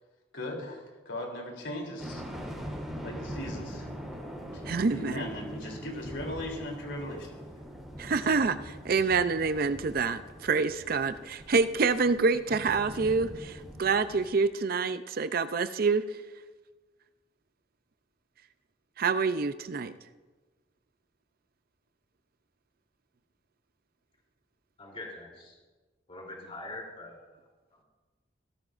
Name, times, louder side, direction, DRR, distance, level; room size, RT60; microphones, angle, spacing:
voice 1, 0.3-2.2 3.0-3.9 4.5-4.6 4.9-7.3, left 1 dB, 90° left, 0 dB, 3.3 m, -38 dB
sound 1, 2.0-14.3, equal, ahead, 3.1 m, -42 dB
voice 2, 4.7-5.3 8.0-8.6 8.8-13.5 13.8-16.0 19.0-19.9, right 4 dB, 55° right, 12 dB, 0.5 m, -27 dB
voice 3, 24.8-25.6 26.1-27.8, left 2 dB, 30° left, -1 dB, 3.3 m, -44 dB
17.0 x 13.5 x 2.5 m, 1.3 s
head